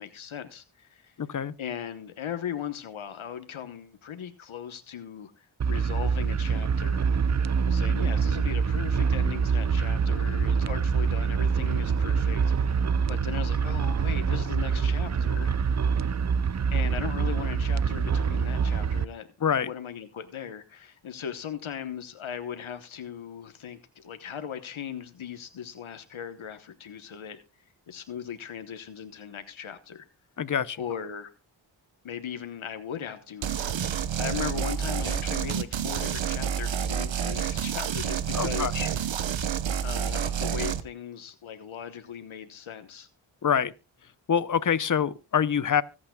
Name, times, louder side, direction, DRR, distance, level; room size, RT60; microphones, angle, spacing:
voice 1, 0.0-1.2 1.6-7.1 7.6-15.5 16.7-19.3 19.6-27.4 27.9-30.1 30.8-31.3 32.0-33.5 34.2-39.1 39.8-43.1, left 8 dB, 80° left, 1.1 m, -38 dB
voice 2, 1.2-1.5 19.4-19.7 30.4-30.8 38.3-38.9 43.4-43.7 44.3-45.8, left 8 dB, 40° left, 0.7 m, -25 dB
sound 1, 5.6-19.0, right 6 dB, 35° right, 0.5 m, -25 dB
sound 2, 33.4-40.8, right 8 dB, 70° right, 1.0 m, -29 dB
24.5 x 8.7 x 2.3 m
wide cardioid pair, 95°, 47 cm